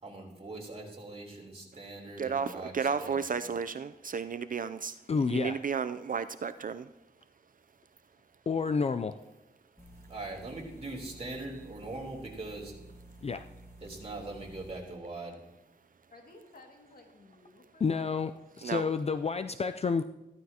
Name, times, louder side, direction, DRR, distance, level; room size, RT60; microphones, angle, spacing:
voice 1, 0.0-3.2 3.4-3.5 10.1-12.7 13.8-15.4, right 2 dB, 35° right, 3.5 m, -41 dB
voice 2, 2.2-5.0 5.3-6.9 18.6-18.8, right 6 dB, 55° right, 0.4 m, -33 dB
voice 3, 5.1-5.6 8.5-9.1 13.2-13.4 17.8-18.3 18.6-20.0, left 5 dB, 40° left, 0.4 m, -29 dB
sound 1, 9.8-14.8, right 1 dB, 15° left, 2.0 m, -52 dB
voice 4, 16.1-18.4, left 2 dB, 60° left, 2.2 m, -55 dB
15.0 x 12.5 x 2.9 m
wide cardioid pair, 85°, 17 cm